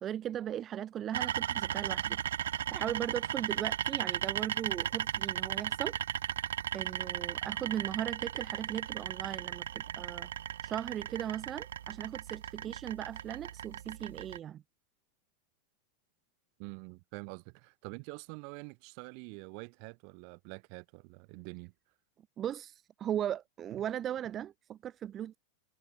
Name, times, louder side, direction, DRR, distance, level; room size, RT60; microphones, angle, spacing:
voice 1, 0.0-2.2 2.7-6.0 6.7-10.3 10.6-14.6 22.4-25.4, right 10 dB, 35° right, 0.6 m, -38 dB
sound 1, 1.1-14.4, right 10 dB, 80° right, 0.9 m, -36 dB
voice 2, 16.6-21.7, right 40 dB or more, 55° right, 3.9 m, -46 dB
hypercardioid pair, 100°, 0 cm